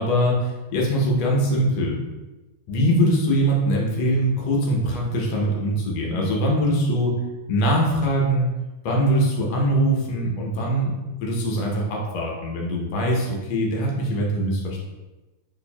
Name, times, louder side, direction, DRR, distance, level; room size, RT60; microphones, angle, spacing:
voice 1, 0.0-0.3 0.7-2.0 2.7-7.2 7.5-8.5 8.9-10.9 11.2-14.8, equal, 70° left, -2 dB, 1.8 m, -22 dB
4.6 x 4.4 x 2.3 m, 1.1 s
omnidirectional pair, 3.5 m